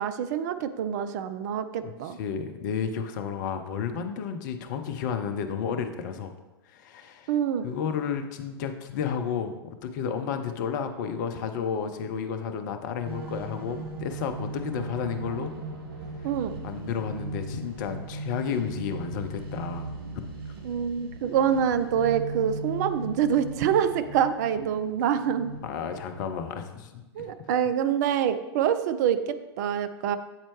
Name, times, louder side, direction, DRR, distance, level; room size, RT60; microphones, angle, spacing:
voice 1, 0.0-2.2 7.3-7.6 16.2-16.5 20.6-25.5 27.2-30.2, right 8 dB, 45° right, 10 dB, 0.4 m, -26 dB
voice 2, 2.2-6.3 6.7-7.3 7.6-15.5 16.6-19.9 25.6-27.3, left 7 dB, 45° left, 7 dB, 0.6 m, -32 dB
sound 1, 13.0-26.3, right 2 dB, 65° right, 0.9 m, -38 dB
8.0 x 4.3 x 3.0 m, 1.1 s
figure-of-eight pair, 95°, 13 cm